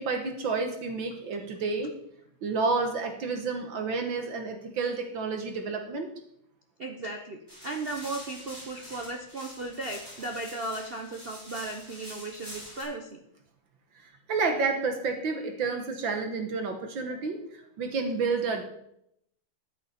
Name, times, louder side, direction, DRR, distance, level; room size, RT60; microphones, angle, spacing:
voice 1, 0.0-1.9 2.4-6.1 14.3-18.6, right 4 dB, 65° right, 5 dB, 1.9 m, -30 dB
voice 2, 6.8-13.2, right 2 dB, 50° right, 3 dB, 0.7 m, -36 dB
sound 1, 7.5-12.8, equal, 10° right, 5.0 m, -45 dB
13.5 x 9.6 x 4.3 m, 0.75 s
omnidirectional pair, 2.3 m